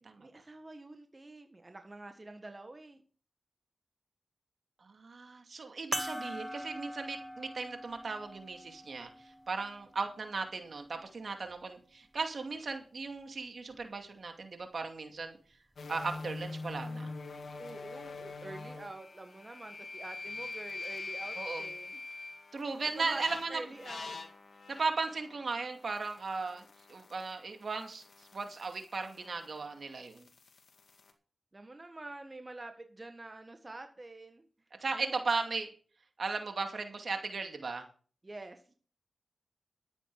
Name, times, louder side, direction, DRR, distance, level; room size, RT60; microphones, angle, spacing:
voice 1, 0.0-3.0 17.6-22.0 23.0-23.2 23.5-24.2 31.5-34.5 34.9-35.2 38.2-38.7, right 2 dB, 35° right, 6 dB, 1.6 m, -47 dB
voice 2, 4.8-15.4 15.9-17.1 21.4-21.6 22.5-23.6 24.7-30.3 34.8-35.7 36.2-37.9, right 4 dB, 65° right, 5 dB, 2.3 m, -37 dB
sound 1, 5.9-10.7 11.5-11.6 13.7-13.9, equal, ahead, 1.3 m, -42 dB
sound 2, 15.8-27.3 27.6-31.1, left 3 dB, 70° left, 2.0 m, -45 dB
12.5 x 9.1 x 4.8 m, 0.40 s
cardioid pair, 40°, 0 cm